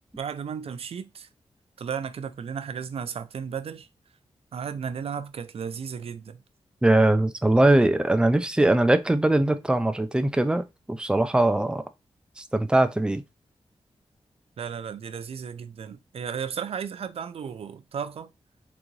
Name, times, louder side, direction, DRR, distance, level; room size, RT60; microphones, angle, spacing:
voice 1, 0.2-1.3 1.8-3.9 4.5-6.4 14.6-18.3, right 7 dB, 65° right, 0.5 m, -34 dB
voice 2, 6.8-11.8 12.4-13.2, right 1 dB, 10° right, 0.4 m, -21 dB
3.9 x 3.5 x 3.1 m
wide cardioid pair, 175°, 11 cm